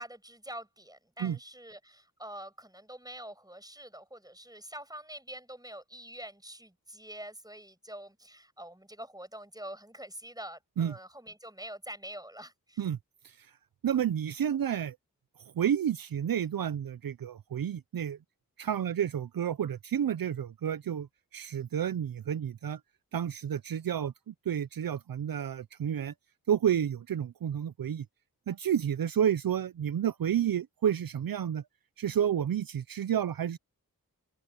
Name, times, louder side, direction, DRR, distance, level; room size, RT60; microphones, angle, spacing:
voice 1, 0.0-12.9, right 1 dB, 10° right, 7.2 m, -45 dB
voice 2, 13.8-15.0 15.6-18.2 18.6-21.1 21.3-22.8 23.1-26.1 26.5-28.0 28.5-31.6 32.0-33.6, right 9 dB, 70° right, 0.6 m, -30 dB
cardioid pair, 55°, 36 cm